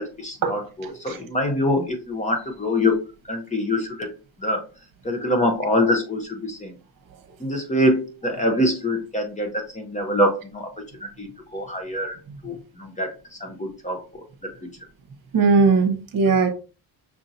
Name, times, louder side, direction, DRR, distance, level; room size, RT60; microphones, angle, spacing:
voice 1, 0.0-2.9 3.3-4.1 4.4-4.6 5.0-6.7 7.4-10.7 11.2-12.2 12.4-13.1 13.4-14.2, left 1 dB, 20° left, 2 dB, 0.9 m, -24 dB
voice 2, 0.8-1.2 15.3-16.5, right 4 dB, 60° right, 6 dB, 1.0 m, -19 dB
6.0 x 2.8 x 2.6 m, 0.34 s
cardioid pair, 130°, 38 cm